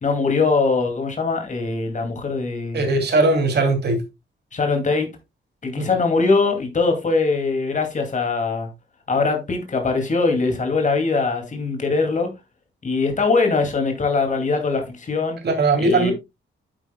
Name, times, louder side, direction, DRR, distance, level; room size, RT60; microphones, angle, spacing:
voice 1, 0.0-2.8 4.5-5.1 5.6-8.7 9.1-12.3 12.8-15.4 15.8-16.1, left 4 dB, 35° left, 2.3 m, -22 dB
voice 2, 2.7-4.0 5.8-5.9 15.4-16.1, right 2 dB, 55° right, 2.6 m, -19 dB
9.6 x 8.2 x 2.2 m
wide cardioid pair, 175°, 21 cm